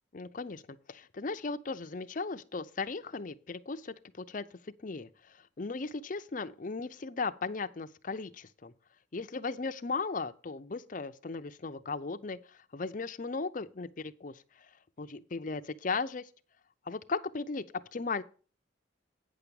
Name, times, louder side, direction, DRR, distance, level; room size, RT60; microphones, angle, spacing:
voice 1, 0.1-8.7 9.1-14.7 15.0-16.3 16.9-17.7 17.9-18.2, left 4 dB, 45° left, 0.6 m, -37 dB
9.2 x 5.9 x 6.8 m
head